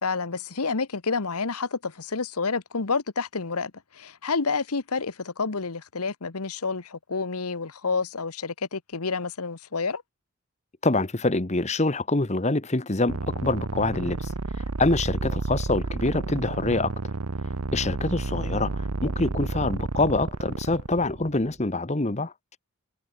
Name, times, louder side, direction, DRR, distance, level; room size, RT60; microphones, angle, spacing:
voice 1, 0.0-10.0, left 4 dB, 85° left, 1.2 m, -29 dB
voice 2, 10.8-16.9 17.7-22.3, left 2 dB, 30° left, 1.1 m, -25 dB
sound 1, 13.1-21.5, right 3 dB, 90° right, 1.0 m, -31 dB
head